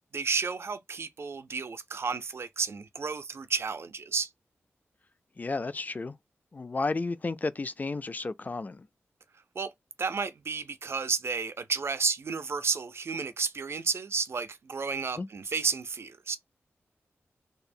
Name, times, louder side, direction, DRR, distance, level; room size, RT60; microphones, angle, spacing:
voice 1, 0.1-4.3 9.6-9.7 10.0-16.4, right 5 dB, 55° right, 0.4 m, -32 dB
voice 2, 5.4-6.2 6.5-8.9 15.2-15.3, left 3 dB, 35° left, 0.3 m, -32 dB
2.8 x 2.0 x 2.5 m
cardioid pair, 65°, 5 cm